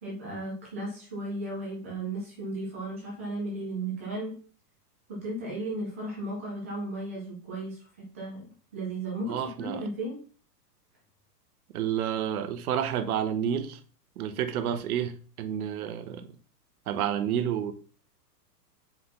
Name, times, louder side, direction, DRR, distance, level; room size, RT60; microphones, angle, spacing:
voice 1, 0.0-4.4 5.1-7.8 8.1-10.2, right 2 dB, 10° right, 0.3 m, -35 dB
voice 2, 9.3-9.8 11.7-13.8 14.2-16.3 16.9-17.7, right 9 dB, 60° right, 1.0 m, -30 dB
4.7 x 4.0 x 5.3 m
hypercardioid pair, 140°, 49 cm